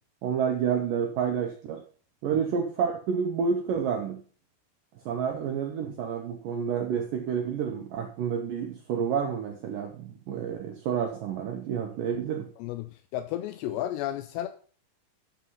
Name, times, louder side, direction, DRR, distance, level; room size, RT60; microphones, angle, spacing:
voice 1, 0.2-1.8 2.2-4.2 5.1-12.5, right 7 dB, 80° right, 3 dB, 2.0 m, -29 dB
voice 2, 12.6-14.5, left 12 dB, 80° left, 9 dB, 2.7 m, -33 dB
11.5 x 4.4 x 5.6 m, 0.42 s
omnidirectional pair, 5.0 m